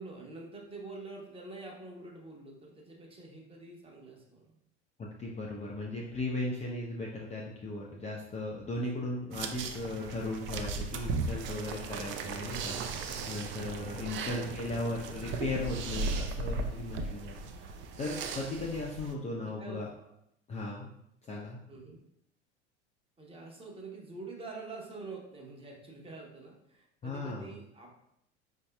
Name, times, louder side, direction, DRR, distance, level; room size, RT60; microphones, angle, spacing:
voice 1, 0.0-4.6 14.4-14.6 19.4-19.8 21.7-22.0 23.2-28.0, right 3 dB, 15° right, -1 dB, 0.9 m, -46 dB
voice 2, 5.0-19.9 20.5-20.9 21.2-21.6 27.0-27.5, left 2 dB, 20° left, -3 dB, 0.5 m, -37 dB
sound 1, 9.3-19.1, right 4 dB, 35° right, 0.4 m, -37 dB
4.5 x 2.7 x 2.2 m, 0.76 s
hypercardioid pair, 80°, 35 cm